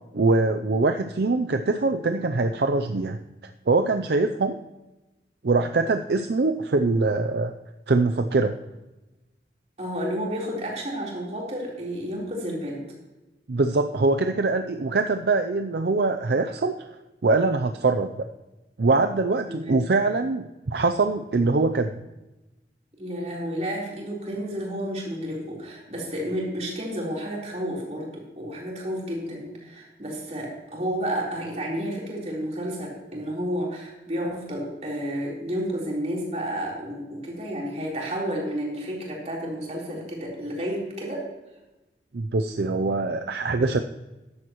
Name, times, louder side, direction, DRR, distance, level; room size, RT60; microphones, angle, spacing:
voice 1, 0.1-3.2 3.7-4.6 5.4-7.5 7.9-8.6 13.5-16.9 17.2-18.3 18.8-22.0 42.1-43.8, right 3 dB, 65° right, 7 dB, 0.5 m, -23 dB
voice 2, 9.8-12.8 19.5-19.8 23.0-41.3, equal, 40° right, -3 dB, 4.0 m, -31 dB
14.5 x 11.0 x 3.1 m, 1.1 s
head